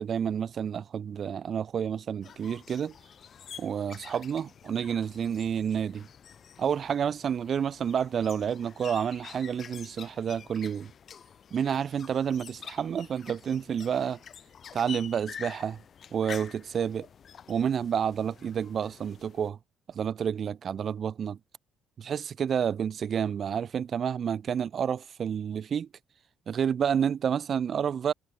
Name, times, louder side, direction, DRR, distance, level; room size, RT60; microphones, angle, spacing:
voice 1, 0.0-2.9 3.6-6.1 6.6-10.9 11.5-14.2 14.7-15.8 16.1-17.1 17.5-19.6 19.9-21.4 22.0-25.9 26.5-28.1, right 8 dB, 55° right, 0.4 m, -29 dB
sound 1, 2.2-19.5, left 7 dB, 50° left, 2.9 m, -48 dB
hypercardioid pair, 50°, 0 cm